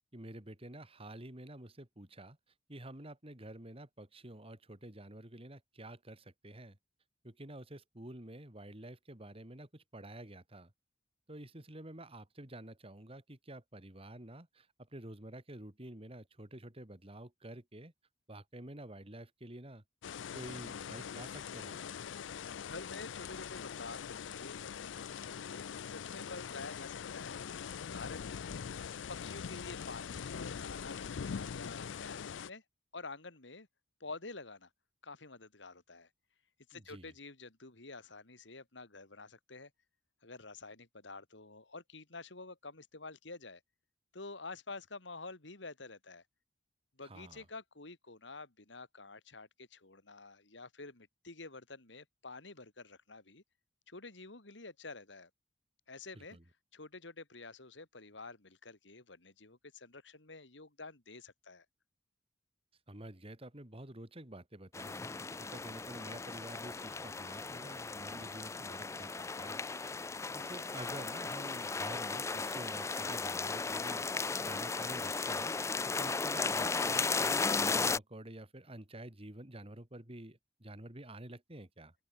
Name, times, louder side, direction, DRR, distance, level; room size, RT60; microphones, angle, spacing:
voice 1, 0.1-2.4 2.7-6.8 7.2-10.7 11.3-14.7 14.9-17.9 18.3-19.8 20.3-21.8 36.7-37.1 47.0-47.4 56.1-56.4 62.9-65.0 65.4-69.6 70.3-74.0 74.4-75.5 75.8-81.9, right 1 dB, 30° right, 2.6 m, -49 dB
sound 1, 20.0-32.5, left 7 dB, 90° left, 0.5 m, -43 dB
voice 2, 22.6-27.5 27.8-28.6 29.1-32.6 32.9-33.7 34.0-34.7 35.0-36.1 36.7-39.7 40.2-43.6 44.1-46.2 47.0-53.4 53.9-55.3 55.9-56.4 56.7-61.6, left 3 dB, 75° left, 2.8 m, -49 dB
sound 2, 64.7-78.0, left 4 dB, 15° left, 0.4 m, -36 dB
open air
head